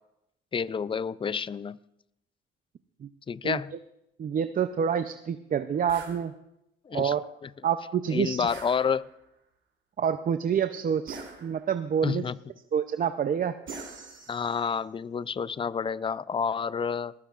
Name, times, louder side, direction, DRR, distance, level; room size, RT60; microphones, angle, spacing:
voice 1, 0.5-1.8 3.3-3.7 6.8-7.2 7.4-7.5 8.1-9.1 12.0-12.4 14.3-17.1, left 6 dB, 25° left, 18 dB, 0.4 m, -29 dB
voice 2, 4.2-6.3 6.9-7.2 7.6-8.4 10.0-12.2 12.7-13.5, right 8 dB, 45° right, 9 dB, 0.6 m, -27 dB
sound 1, 5.9-6.2 8.5-9.3 11.1-11.9 13.7-14.8, right 4 dB, 70° right, 3.2 m, -44 dB
20.0 x 14.5 x 2.5 m, 0.84 s
cardioid pair, 90°, 20 cm